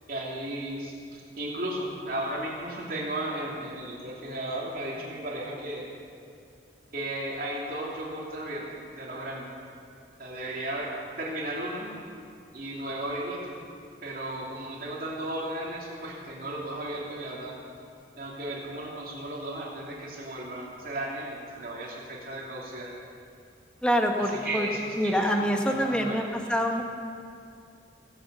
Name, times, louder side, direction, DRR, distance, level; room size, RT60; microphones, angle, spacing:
voice 1, 0.1-5.8 6.9-8.7 8.9-9.5 10.2-10.9 11.2-11.9 12.5-13.6 14.0-17.6 18.2-22.9 24.2-26.3, right 1 dB, 50° right, -4 dB, 3.0 m, -35 dB
voice 2, 23.8-24.7 25.0-26.2 26.5-26.8, equal, 5° left, 2 dB, 1.2 m, -25 dB
21.5 x 8.0 x 6.5 m, 2.3 s
head